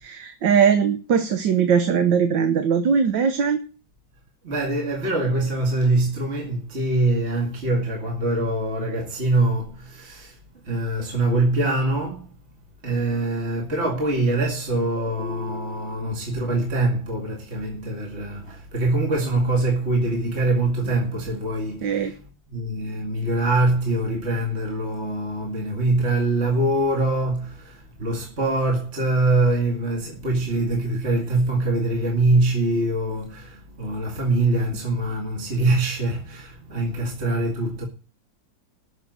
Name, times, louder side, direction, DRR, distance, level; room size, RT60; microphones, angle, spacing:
voice 1, 0.0-3.6 21.8-22.1, right 7 dB, 70° right, 1.6 m, -20 dB
voice 2, 4.4-10.4 10.6-12.3 12.8-22.2 22.5-37.9, right 2 dB, 35° right, 2.5 m, -23 dB
13.0 x 6.8 x 8.1 m
omnidirectional pair, 2.1 m